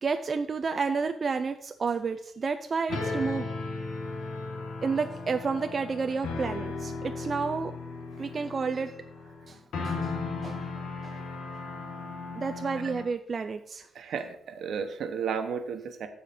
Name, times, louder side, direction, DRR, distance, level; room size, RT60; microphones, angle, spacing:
voice 1, 0.0-3.5 4.8-7.7 8.2-9.0 9.5-9.6 9.8-10.7 11.0-11.2 12.3-13.9, right 5 dB, 30° right, 7 dB, 0.4 m, -31 dB
sound 1, 2.9-13.1, left 3 dB, 65° left, 1.7 m, -36 dB
voice 2, 13.9-16.1, right 6 dB, 65° right, 7 dB, 1.1 m, -33 dB
15.0 x 5.0 x 4.3 m, 0.68 s
wide cardioid pair, 175°, 0 cm